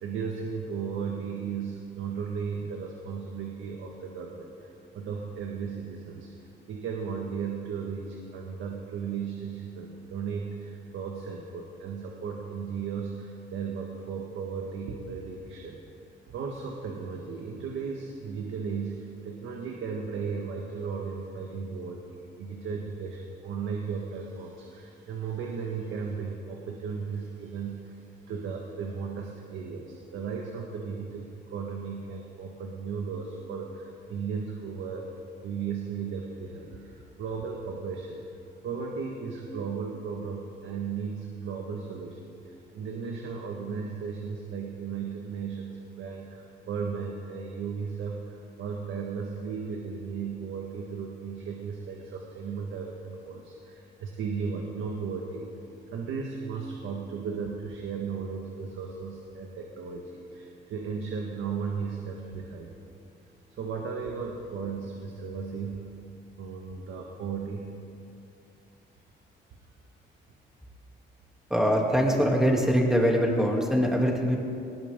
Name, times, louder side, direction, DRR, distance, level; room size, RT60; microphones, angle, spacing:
voice 1, 0.0-6.3 6.7-15.8 16.3-28.0 28.3-35.1 35.4-38.2 38.6-42.2 42.5-55.6 55.9-62.7 63.6-65.9 66.4-67.7, right 5 dB, 80° right, 0 dB, 1.7 m, -35 dB
voice 2, 71.5-74.4, equal, 5° right, -1 dB, 3.0 m, -23 dB
19.0 x 19.0 x 3.9 m, 2.6 s
cardioid pair, 90°, 20 cm